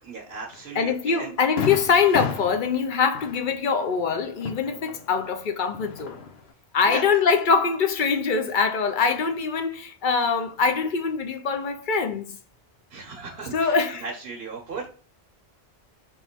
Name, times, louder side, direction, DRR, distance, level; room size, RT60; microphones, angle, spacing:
voice 1, 0.0-1.3 6.8-7.0 12.9-13.7 14.0-14.9, right 4 dB, 70° right, 1.1 m, -36 dB
Fireworks, 0.5-0.7 1.1-1.2 1.6-5.3 5.7-6.5, left 6 dB, 80° left, 0.9 m, -33 dB
voice 2, 0.7-6.2 6.7-12.4 13.5-14.0, left 5 dB, 55° left, 0.8 m, -23 dB
3.5 x 3.0 x 4.4 m
omnidirectional pair, 1.0 m